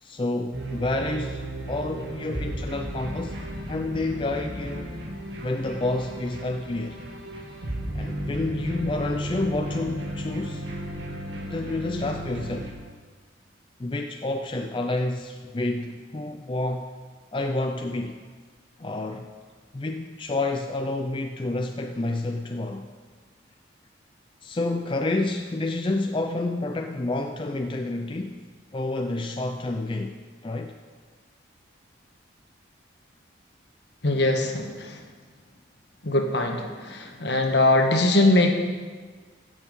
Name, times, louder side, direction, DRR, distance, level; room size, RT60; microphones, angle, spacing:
voice 1, 0.0-3.4 3.7-4.9 5.4-7.0 7.9-10.6 11.5-12.8 13.8-16.9 17.3-18.2 18.8-19.3 19.7-22.9 24.4-28.4 28.7-30.2 30.4-30.8, left 2 dB, 25° left, 4 dB, 0.4 m, -29 dB
sound 1, 0.5-12.7, right 1 dB, 60° right, 2.0 m, -34 dB
voice 2, 34.0-35.0 36.0-38.5, left 2 dB, 60° left, 3 dB, 1.4 m, -22 dB
15.5 x 7.1 x 5.4 m, 1.5 s
head